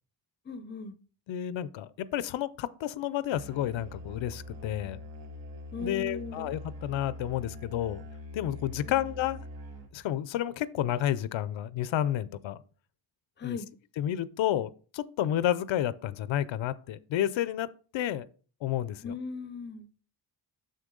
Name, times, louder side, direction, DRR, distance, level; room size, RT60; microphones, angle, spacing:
voice 1, 0.5-1.0 5.7-6.5 8.8-9.0 13.4-13.7 19.0-19.9, left 4 dB, 25° left, 0.5 m, -38 dB
voice 2, 1.3-5.0 5.8-8.0 8.3-9.4 9.9-12.6 13.4-13.6 14.0-17.7 17.9-18.3 18.6-19.1, left 11 dB, 75° left, 0.6 m, -31 dB
Musical instrument, 3.3-10.1, left 1 dB, 75° right, 1.8 m, -44 dB
6.8 x 6.4 x 3.8 m
cardioid pair, 110°, 45 cm